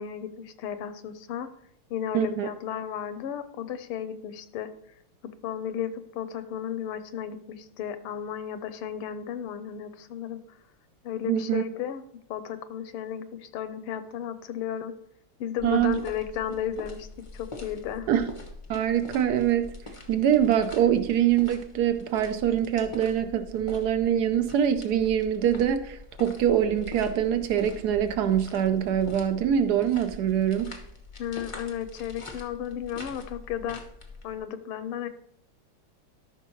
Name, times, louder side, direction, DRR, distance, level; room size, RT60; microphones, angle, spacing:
voice 1, 0.0-1.5 1.9-4.7 5.2-10.6 11.0-12.0 12.3-14.9 15.4-17.1 17.3-18.1 31.2-33.8 34.2-35.1, left 9 dB, 90° left, 12 dB, 1.6 m, -34 dB
voice 2, 2.1-2.5 11.3-11.6 15.6-16.0 18.1-18.3 18.7-19.7 20.1-30.7, right 9 dB, 75° right, 10 dB, 0.9 m, -24 dB
sound 1, 15.6-34.4, left 3 dB, 40° left, 0.4 m, -44 dB
13.5 x 5.9 x 3.1 m, 0.72 s
omnidirectional pair, 2.4 m